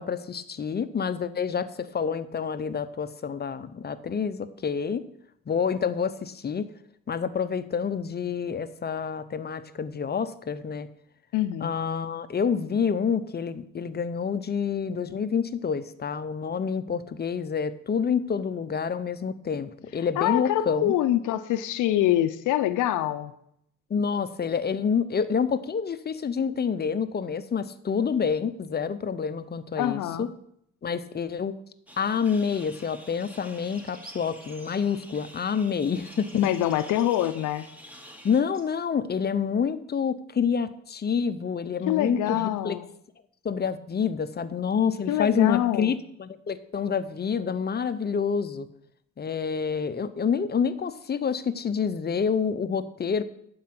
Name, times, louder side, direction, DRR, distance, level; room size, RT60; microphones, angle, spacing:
voice 1, 0.0-5.0 5.5-6.7 7.1-10.9 11.6-20.9 23.9-30.3 30.8-31.5 32.0-36.3 38.2-42.8 43.4-48.7 49.2-53.2, left 6 dB, 35° left, 12 dB, 0.6 m, -28 dB
voice 2, 11.3-11.7 20.2-23.3 29.8-30.3 36.3-37.7 41.9-42.9 45.1-45.9, left 13 dB, 85° left, 12 dB, 0.6 m, -25 dB
sound 1, 31.9-38.4, equal, 5° right, 1.3 m, -48 dB
sound 2, 33.7-34.8 36.1-37.2 38.5-38.7, right 2 dB, 30° right, 1.7 m, -50 dB
11.5 x 4.8 x 5.9 m, 0.73 s
cardioid pair, 90°, 30 cm